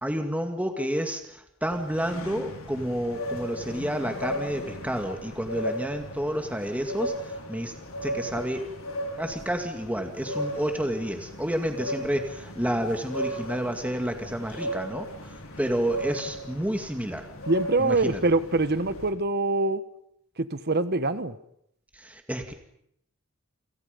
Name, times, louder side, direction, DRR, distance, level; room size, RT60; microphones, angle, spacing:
voice 1, 0.0-7.7 8.0-8.6 9.2-17.3 17.8-18.2 21.9-22.5, equal, 5° right, 4 dB, 2.2 m, -30 dB
sound 1, 1.7-19.1, equal, 75° left, 4.7 m, -36 dB
voice 2, 17.5-19.8 20.4-21.3, right 2 dB, 50° right, 13 dB, 1.4 m, -24 dB
29.5 x 27.0 x 5.3 m, 0.73 s
head